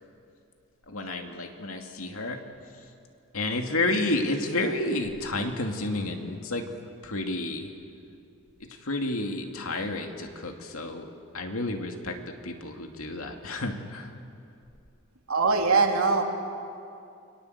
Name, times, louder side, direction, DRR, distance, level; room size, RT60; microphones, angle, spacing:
voice 1, 0.9-2.4 3.3-7.7 8.6-12.2 12.4-14.1, left 2 dB, 80° left, 4 dB, 2.5 m, -31 dB
voice 2, 15.3-16.2, right 4 dB, 90° right, 2 dB, 2.9 m, -22 dB
29.0 x 23.5 x 8.2 m, 2.5 s
head